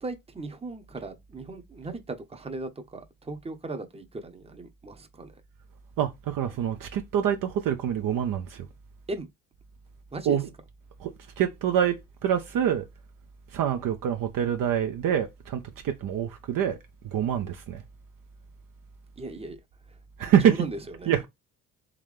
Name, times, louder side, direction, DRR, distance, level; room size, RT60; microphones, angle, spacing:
voice 1, 0.0-5.3 9.1-9.3 10.1-10.4 19.2-19.6 20.4-21.3, right 2 dB, 15° right, 0.8 m, -37 dB
voice 2, 6.0-8.7 10.2-10.5 11.0-12.8 13.5-16.8 17.0-17.8 20.2-20.7 21.0-21.3, right 9 dB, 50° right, 0.6 m, -26 dB
3.7 x 3.1 x 3.2 m
hypercardioid pair, 50°, 44 cm